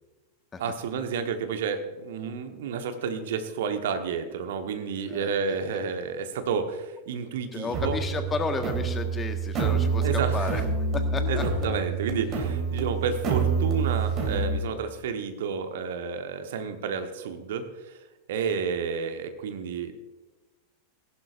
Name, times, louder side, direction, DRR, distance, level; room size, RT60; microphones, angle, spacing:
voice 1, 0.6-8.0 10.0-10.6 11.3-18.0 18.3-20.0, right 6 dB, 55° right, 7 dB, 1.3 m, -31 dB
voice 2, 5.1-5.6 7.5-11.4, left 4 dB, 20° left, 7 dB, 1.5 m, -33 dB
sound 1, 7.7-14.6, right 5 dB, 30° right, 2.8 m, -27 dB
20.0 x 11.5 x 2.6 m, 1.1 s
figure-of-eight pair, 90°, 0 cm